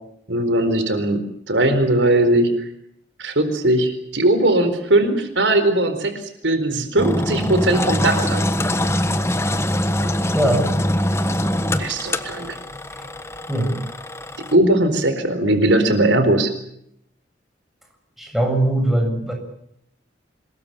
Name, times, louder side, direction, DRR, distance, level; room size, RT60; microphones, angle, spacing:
voice 1, 0.3-2.7 3.2-8.4 11.8-12.6 14.5-16.5, right 1 dB, 80° right, 9 dB, 4.3 m, -19 dB
Engine, 7.0-14.5, left 1 dB, 15° left, 1.4 m, -23 dB
voice 2, 10.3-10.7 13.0-13.1 13.5-13.8 18.2-19.3, right 1 dB, ahead, 2 dB, 7.3 m, -20 dB
27.0 x 21.5 x 7.4 m, 0.73 s
head